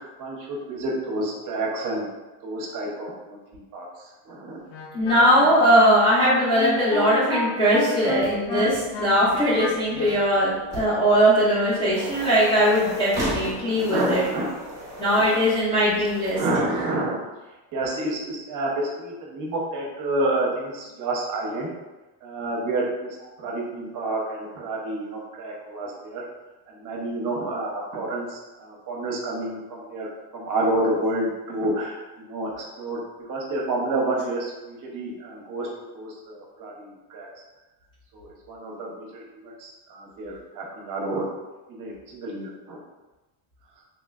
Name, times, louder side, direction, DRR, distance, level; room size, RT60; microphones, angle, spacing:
voice 1, 0.2-2.1 2.4-3.4 3.7-3.9 4.3-4.6 13.6-14.8 16.3-17.2 17.7-21.7 22.2-23.1 23.4-26.2 26.7-30.1 30.3-33.0 33.3-35.7 35.9-37.3 38.1-41.2 41.7-42.8, right 2 dB, 40° right, -2 dB, 0.7 m, -29 dB
Wind instrument woodwind instrument, 4.7-10.3, left 1 dB, 75° left, 0.8 m, -31 dB
voice 2, 4.9-14.3 15.0-16.4 16.7-16.9, equal, 10° left, -10 dB, 0.4 m, -20 dB
sound 1, 8.2-16.4, right 1 dB, 5° right, 0.8 m, -36 dB
3.1 x 3.0 x 2.3 m, 1.1 s
cardioid pair, 155°, 47 cm